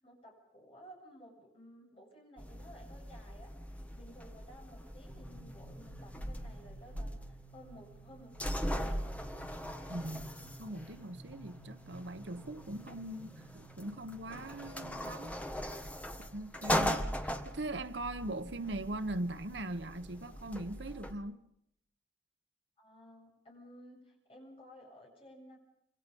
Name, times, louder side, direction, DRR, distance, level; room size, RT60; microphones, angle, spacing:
voice 1, 0.0-3.5 3.9-9.0 22.8-25.6, equal, 30° left, 8.0 m, -55 dB
sound 1, 2.4-21.1, equal, 10° left, 1.6 m, -40 dB
sound 2, 5.1-14.9, right 3 dB, 50° right, 2.9 m, -55 dB
voice 2, 9.9-15.4 16.3-21.4, right 1 dB, 65° right, 1.2 m, -41 dB
27.0 x 25.0 x 5.4 m
head